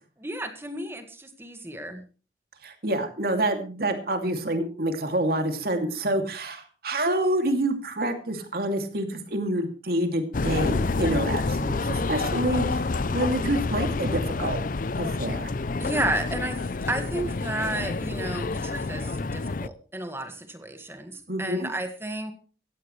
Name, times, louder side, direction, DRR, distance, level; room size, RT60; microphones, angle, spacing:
voice 1, 0.2-2.0 15.8-22.3, right 1 dB, 15° right, 6 dB, 1.9 m, -32 dB
voice 2, 2.6-14.6 15.0-15.5 21.3-21.7, right 1 dB, 55° right, 5 dB, 2.7 m, -27 dB
sound 1, 10.3-19.7, left 3 dB, 50° left, 0.6 m, -28 dB
16.5 x 16.0 x 3.3 m, 0.36 s
head